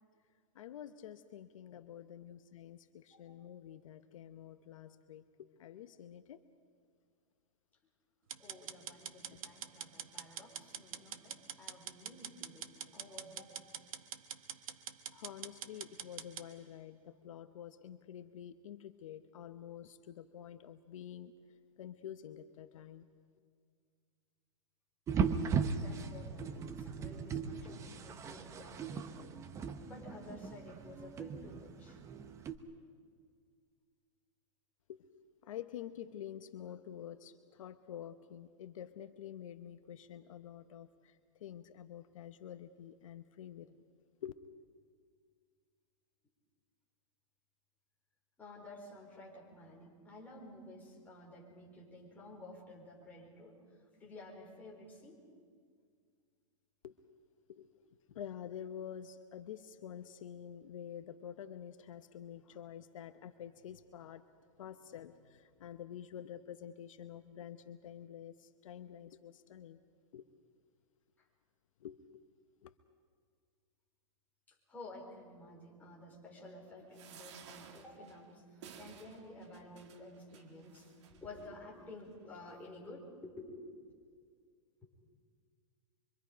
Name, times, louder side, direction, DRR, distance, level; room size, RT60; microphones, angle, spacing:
voice 1, 0.5-6.4 15.1-21.3 21.8-23.1 34.9-35.0 35.4-43.7 44.2-44.3 56.8-56.9 57.5-57.7 58.1-64.2 64.6-69.8 70.1-70.3 71.8-72.0 72.6-72.7, left 10 dB, 75° left, 10 dB, 1.0 m, -48 dB
sound 1, 8.3-16.5, right 8 dB, 90° right, 1.4 m, -45 dB
voice 2, 8.4-13.6 25.7-29.4 29.8-32.0 48.4-53.6 53.9-55.2 71.2-71.3 74.5-84.0 84.8-84.9, left 2 dB, 10° left, -3 dB, 4.5 m, -52 dB
sound 2, 25.1-32.6, right 6 dB, 15° right, 0.9 m, -38 dB
sound 3, 76.9-81.5 82.1-82.2 82.5-82.6, right 7 dB, 60° right, 2.1 m, -56 dB
25.5 x 24.5 x 5.2 m, 2.1 s
supercardioid pair, 155°, 17 cm